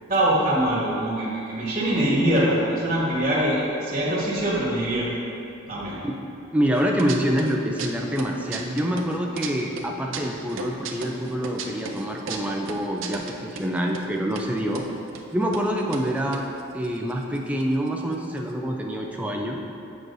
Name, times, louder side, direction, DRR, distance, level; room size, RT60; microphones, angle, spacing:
voice 1, 0.1-5.1 5.7-6.0, right 1 dB, 30° right, -8 dB, 1.3 m, -23 dB
voice 2, 6.5-14.8 15.3-16.4 16.7-19.6, equal, 5° right, 0 dB, 0.4 m, -26 dB
sound 1, 6.8-7.5 7.8-9.5 9.8-13.7 13.9-14.0 14.3-14.9 15.1-15.2 15.5-15.7 15.9-17.6 17.9-18.0 18.1-18.5, right 5 dB, 65° right, 0.5 m, -35 dB
8.1 x 6.0 x 2.6 m, 2.7 s
head